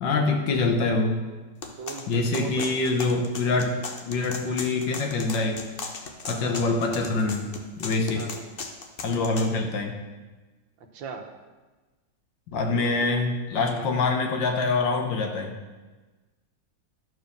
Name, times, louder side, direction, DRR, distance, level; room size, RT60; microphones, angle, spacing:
voice 1, 0.0-1.2 2.1-3.8 4.1-5.6 6.3-7.5 7.8-8.2 9.0-9.9 12.5-15.5, left 3 dB, 65° left, 4 dB, 1.5 m, -25 dB
sound 1, 1.6-9.5, left 4 dB, 80° left, 0.5 m, -37 dB
voice 2, 1.8-2.7 4.6-4.7 6.2-6.8 8.1-8.5 10.8-11.3 12.5-13.1 13.6-13.9, right 5 dB, 70° right, 4 dB, 1.5 m, -39 dB
12.0 x 4.8 x 6.4 m, 1.2 s
omnidirectional pair, 2.3 m